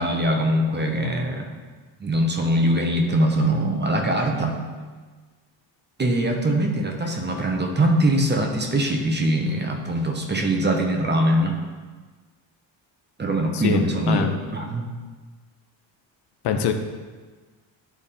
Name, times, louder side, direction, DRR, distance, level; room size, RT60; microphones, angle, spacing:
voice 1, 0.0-1.5 2.0-4.6 6.0-11.6 13.2-14.9, right 1 dB, 25° right, 2 dB, 0.9 m, -22 dB
voice 2, 13.5-14.4 16.4-16.7, left 7 dB, 60° left, 6 dB, 0.7 m, -24 dB
9.7 x 3.5 x 4.2 m, 1.4 s
cardioid pair, 100°, 46 cm